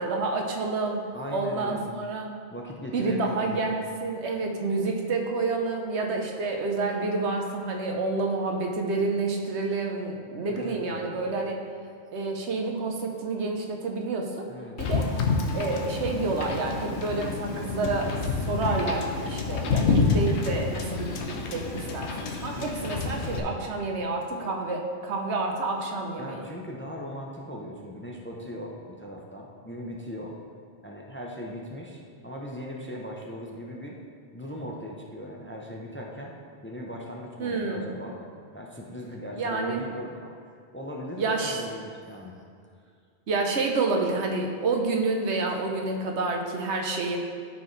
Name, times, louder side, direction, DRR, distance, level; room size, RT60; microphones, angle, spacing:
voice 1, 0.0-1.0 1.3-2.3 2.9-11.6 12.1-14.5 14.8-15.1 15.5-26.4 37.4-37.9 39.4-39.8 41.2-41.6 43.3-47.2, right 3 dB, 85° right, 2 dB, 1.2 m, -29 dB
voice 2, 1.1-1.9 2.5-3.7 10.5-11.2 14.5-14.8 22.6-22.9 26.2-30.3 30.8-34.0 34.3-36.3 36.6-38.2 38.5-40.3 40.7-42.3, equal, 15° left, -1 dB, 0.6 m, -39 dB
Wind / Boat Water vehicle, 14.8-23.4, left 4 dB, 90° left, 1.1 m, -28 dB
12.5 x 4.8 x 3.3 m, 2.2 s
omnidirectional pair, 1.1 m